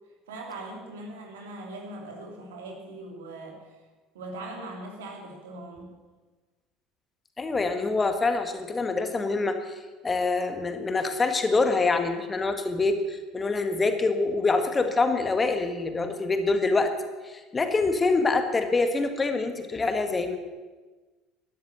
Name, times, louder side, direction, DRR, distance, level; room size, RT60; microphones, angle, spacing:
voice 1, 0.3-3.8 4.1-5.9, right 2 dB, 70° right, 1 dB, 3.0 m, -40 dB
voice 2, 7.4-9.8 10.0-16.9 17.2-20.4, left 3 dB, 20° left, 7 dB, 1.6 m, -25 dB
13.0 x 11.0 x 8.1 m, 1.3 s
figure-of-eight pair, 65°, 0 cm